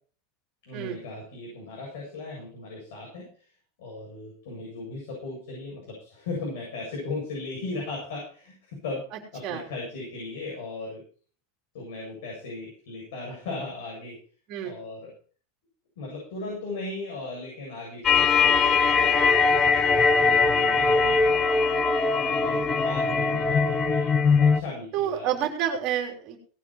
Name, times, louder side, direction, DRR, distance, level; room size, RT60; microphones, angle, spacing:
voice 1, 0.7-3.3 3.8-9.0 9.3-11.0 11.7-14.2 14.6-15.1 16.0-19.1 20.2-21.7 22.2-24.1 24.4-25.3, left 2 dB, 75° left, -2 dB, 7.9 m, -37 dB
sound 1, 18.0-24.6, left 5 dB, 20° left, 1.0 m, -21 dB
voice 2, 24.9-26.4, right 10 dB, 35° right, 2 dB, 3.6 m, -28 dB
18.5 x 9.0 x 4.6 m, 0.43 s
supercardioid pair, 170°, 0 cm